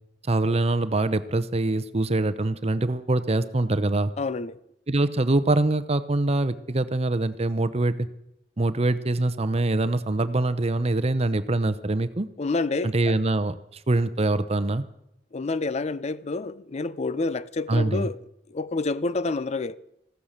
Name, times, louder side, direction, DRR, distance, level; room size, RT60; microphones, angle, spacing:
voice 1, 0.3-4.1 4.9-8.1 8.6-12.3 12.8-13.5 13.9-14.8 17.7-18.1, right 2 dB, 35° right, 0.8 m, -24 dB
voice 2, 4.2-4.6 12.4-13.1 15.3-18.2 18.5-19.8, left 3 dB, 40° left, 0.5 m, -28 dB
15.5 x 13.0 x 6.6 m
head